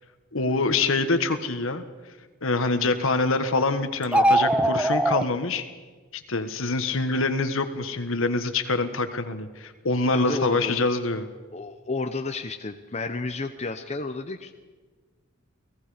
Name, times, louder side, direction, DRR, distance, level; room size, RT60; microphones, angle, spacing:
voice 1, 0.3-1.8 2.4-5.6 6.1-11.3, left 3 dB, 70° left, 9 dB, 1.5 m, -25 dB
sound 1, 4.0-5.2, right 1 dB, 5° right, 0.5 m, -20 dB
voice 2, 10.1-10.7 11.5-14.5, left 3 dB, 30° left, 6 dB, 0.8 m, -31 dB
29.5 x 18.5 x 5.1 m, 1.3 s
head